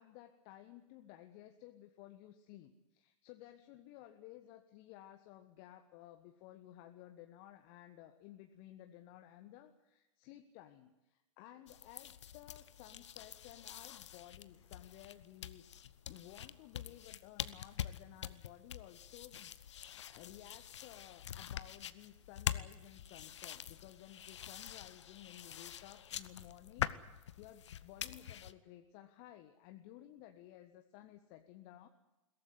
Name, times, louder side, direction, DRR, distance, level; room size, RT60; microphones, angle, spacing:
voice 1, 0.0-15.6 16.1-31.9, left 13 dB, 40° left, 6 dB, 1.5 m, -56 dB
sound 1, 11.7-28.5, left 10 dB, 60° left, 1.0 m, -45 dB
22.0 x 17.5 x 9.7 m, 0.99 s
figure-of-eight pair, 100°, 17 cm